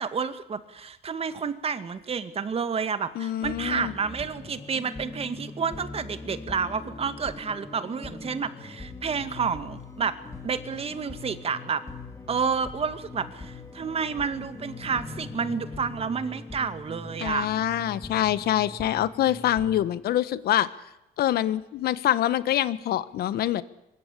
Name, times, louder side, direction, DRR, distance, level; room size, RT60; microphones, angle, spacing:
voice 1, 0.0-10.1 10.4-11.8 12.3-17.5, right 6 dB, 35° right, 11 dB, 2.1 m, -30 dB
voice 2, 3.1-3.9 17.2-20.7 21.2-23.6, left 12 dB, 70° left, 15 dB, 1.4 m, -25 dB
sound 1, 3.4-19.8, left 3 dB, 15° left, 4.1 m, -41 dB
23.5 x 23.5 x 8.5 m, 0.92 s
cardioid pair, 110°, 17 cm